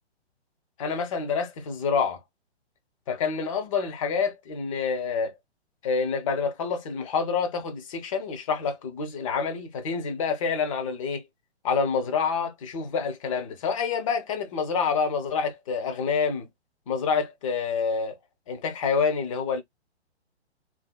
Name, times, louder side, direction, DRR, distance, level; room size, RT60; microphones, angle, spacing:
voice 1, 0.8-2.2 3.1-5.3 5.8-11.2 11.6-16.5 16.9-18.2 18.5-19.6, left 5 dB, 30° left, 0.7 m, -27 dB
2.8 x 2.7 x 2.2 m
figure-of-eight pair, 125°, 34 cm